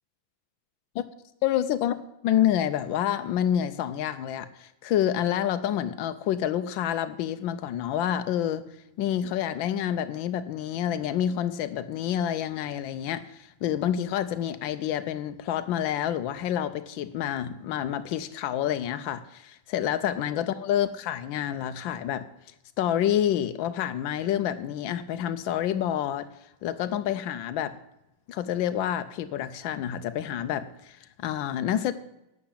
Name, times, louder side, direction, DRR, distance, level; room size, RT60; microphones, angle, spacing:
voice 1, 1.4-1.9 2.2-8.6 9.0-22.2 22.8-26.3 26.6-27.8 28.3-31.9, left 10 dB, 85° left, 12 dB, 1.4 m, -28 dB
11.5 x 6.9 x 8.5 m, 0.87 s
omnidirectional pair, 2.1 m